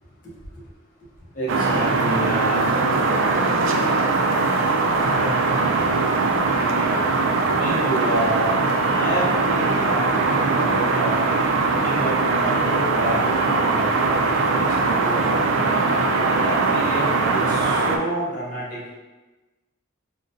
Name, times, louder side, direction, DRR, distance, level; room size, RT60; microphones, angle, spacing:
voice 1, 1.3-2.7 7.5-8.5 8.9-11.2 11.8-15.4 16.1-18.9, right 1 dB, 40° left, -5 dB, 0.7 m, -29 dB
sound 1, 1.5-18.0, right 3 dB, 70° right, 0.3 m, -21 dB
3.7 x 2.1 x 2.6 m, 1.2 s
head